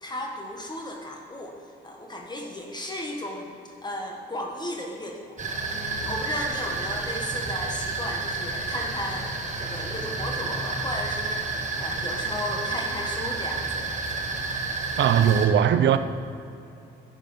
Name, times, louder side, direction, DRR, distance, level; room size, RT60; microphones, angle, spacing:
voice 1, 0.0-1.6 1.8-5.4 5.7-9.3 9.6-11.5 11.8-13.9, left 1 dB, 20° left, 1.3 m, -35 dB
sound 1, 5.4-15.5, right 3 dB, 35° right, 1.6 m, -30 dB
voice 2, 15.0-16.0, right 9 dB, 65° right, 0.6 m, -19 dB
10.5 x 7.2 x 5.5 m
cardioid pair, 90°, 20 cm